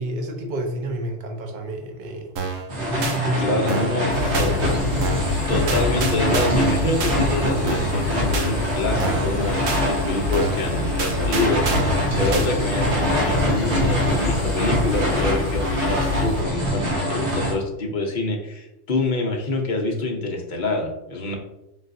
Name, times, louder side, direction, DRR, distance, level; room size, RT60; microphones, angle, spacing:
voice 1, 0.0-2.3 2.8-3.9 4.2-4.8, right 1 dB, 45° right, 2 dB, 0.7 m, -29 dB
sound 1, 2.4-2.7 3.0-3.2 3.7-4.0 4.3-4.5 5.0-5.3 5.7-6.7 7.0-7.2 7.7-8.0 8.3-8.5 9.0-9.3 9.7-9.8 10.3-10.6 11.0-12.0 12.3-12.5, right 5 dB, 85° right, 1.0 m, -28 dB
sound 2, 2.7-17.5, equal, 65° right, 1.4 m, -24 dB
voice 2, 3.4-4.7 5.5-21.4, left 2 dB, 50° left, 0 dB, 0.7 m, -26 dB
sound 3, 4.1-16.4, left 4 dB, 80° left, 1.0 m, -27 dB
4.0 x 3.8 x 2.5 m, 0.90 s
omnidirectional pair, 1.3 m